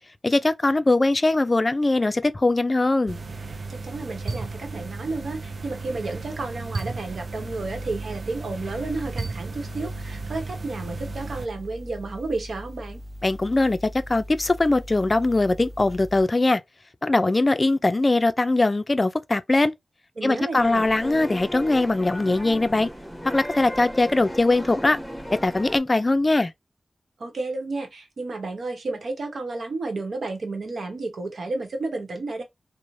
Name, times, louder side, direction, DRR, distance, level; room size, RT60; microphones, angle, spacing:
voice 1, 0.2-3.2 13.2-16.6 17.0-19.7 20.2-22.9 23.2-25.0 25.3-26.5, left 2 dB, 35° left, 0.3 m, -21 dB
sound 1, 3.1-11.5, right 3 dB, 60° right, 0.3 m, -35 dB
voice 2, 3.7-13.0 20.2-20.8 27.2-32.4, right 3 dB, 80° right, 0.9 m, -32 dB
sound 2, 7.0-16.2, equal, 25° right, 0.7 m, -40 dB
sound 3, 20.6-25.8, equal, ahead, 0.9 m, -35 dB
3.0 x 2.0 x 2.6 m
wide cardioid pair, 70°, 0 cm